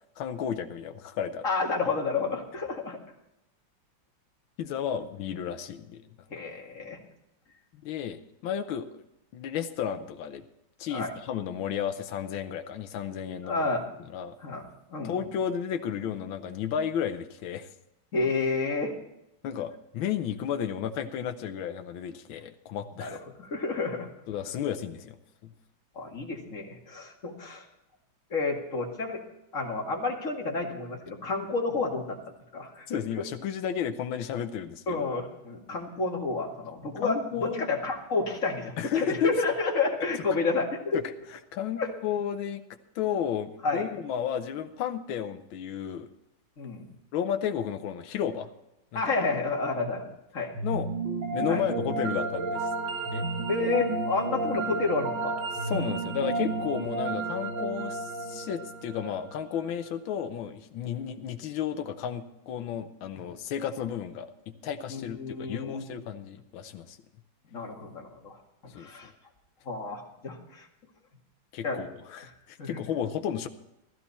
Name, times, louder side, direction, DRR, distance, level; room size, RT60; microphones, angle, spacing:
voice 1, 0.2-1.4 4.6-6.0 7.8-9.0 9.3-10.4 10.8-13.7 14.1-14.4 15.0-17.7 19.4-23.2 24.3-25.2 25.4-25.5 32.9-35.0 37.0-37.6 38.8-39.3 40.3-40.4 40.9-41.1 41.5-42.6 42.9-46.1 47.1-48.5 48.9-49.1 50.6-50.9 51.3-52.7 53.1-53.3 55.6-67.0 68.7-69.1 71.5-73.5, left 8 dB, 85° left, 7 dB, 1.6 m, -33 dB
voice 2, 1.4-3.0 6.3-7.0 10.9-11.1 13.4-13.9 14.4-14.6 14.9-15.2 18.1-18.9 23.0-24.1 26.0-27.7 28.3-29.2 29.5-32.2 32.5-33.2 34.9-41.0 41.8-41.9 43.6-43.9 46.6-46.9 48.9-50.6 51.5-51.6 53.5-55.4 64.9-65.8 67.5-69.1 69.7-70.7 71.6-71.8 72.2-72.3 72.6-72.8, left 3 dB, 40° left, 0 dB, 2.5 m, -30 dB
sound 1, 50.5-59.7, right 3 dB, 65° right, 2.6 m, -32 dB
15.0 x 14.0 x 4.2 m, 0.86 s
omnidirectional pair, 2.2 m